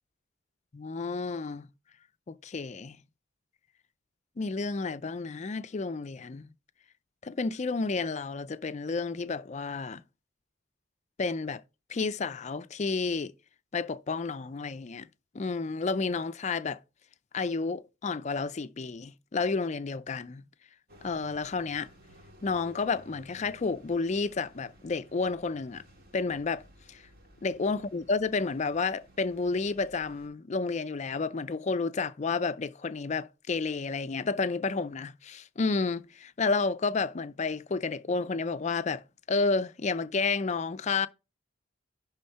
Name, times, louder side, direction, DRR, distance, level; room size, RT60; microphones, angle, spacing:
voice 1, 0.7-1.7 2.3-3.0 4.4-6.5 7.2-10.0 11.2-11.6 11.9-13.3 13.7-15.1 15.3-16.8 17.3-20.4 21.0-21.9 22.4-25.8 26.1-26.6 26.9-27.0 27.4-41.1, left 4 dB, 35° left, 0.4 m, -31 dB
sound 1, 20.9-30.3, equal, 50° right, 2.4 m, -56 dB
11.0 x 3.6 x 5.6 m
head